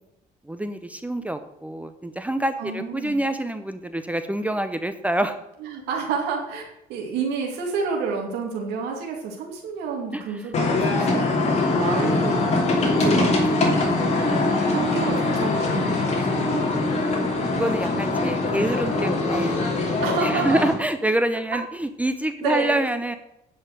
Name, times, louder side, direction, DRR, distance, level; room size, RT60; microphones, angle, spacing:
voice 1, 0.5-5.4 10.1-10.2 13.3-13.4 14.5-14.8 17.5-19.6 20.2-23.2, right 1 dB, 10° right, 9 dB, 0.7 m, -26 dB
voice 2, 2.6-3.2 5.6-6.6 6.9-12.5 13.0-16.6 17.0-17.1 20.0-20.6 22.4-22.8, right 5 dB, 85° right, 0 dB, 2.4 m, -30 dB
sound 1, 10.5-20.7, left 2 dB, 40° left, 2.9 m, -22 dB
10.0 x 5.6 x 6.5 m, 0.86 s
cardioid pair, 110°, 17 cm